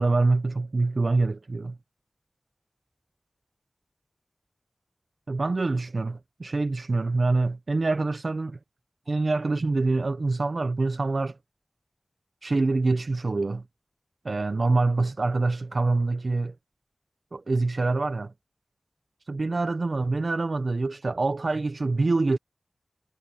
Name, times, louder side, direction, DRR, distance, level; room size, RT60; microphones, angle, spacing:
voice 1, 0.0-1.8 5.3-8.6 9.1-11.4 12.4-13.6 14.2-16.5 17.3-18.3 19.3-22.4, right 3 dB, 70° right, 0.8 m, -25 dB
wide cardioid pair, 50°, 0 cm